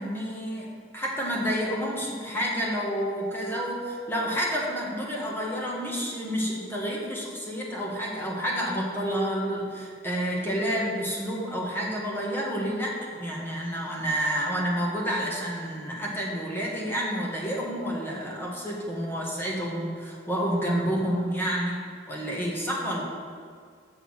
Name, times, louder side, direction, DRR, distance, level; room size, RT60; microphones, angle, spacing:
voice 1, 0.0-21.8 22.1-23.0, equal, 10° left, -3 dB, 1.4 m, -29 dB
6.9 x 6.8 x 5.7 m, 2.1 s
head